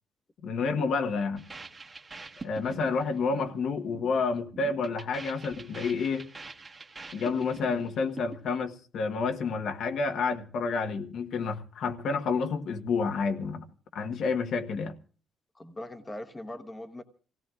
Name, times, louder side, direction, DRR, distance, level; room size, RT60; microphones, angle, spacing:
voice 1, 0.4-1.4 2.4-6.3 7.1-13.6 13.9-14.9, left 4 dB, 70° left, 1.3 m, -29 dB
sound 1, 1.4-8.7, right 3 dB, 25° right, 1.3 m, -45 dB
voice 2, 15.5-17.0, left 1 dB, 15° left, 1.1 m, -40 dB
28.0 x 17.0 x 2.5 m
cardioid pair, 135°, 0 cm